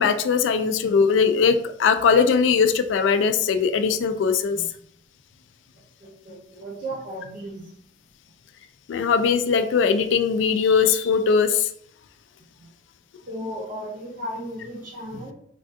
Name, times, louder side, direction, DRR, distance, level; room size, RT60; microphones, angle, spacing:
voice 1, 0.0-4.6 8.9-11.7, left 5 dB, 75° left, 9 dB, 0.3 m, -20 dB
voice 2, 6.0-7.7 12.6-12.7 13.3-15.3, equal, 45° right, -3 dB, 0.8 m, -35 dB
3.3 x 2.3 x 2.6 m, 0.67 s
head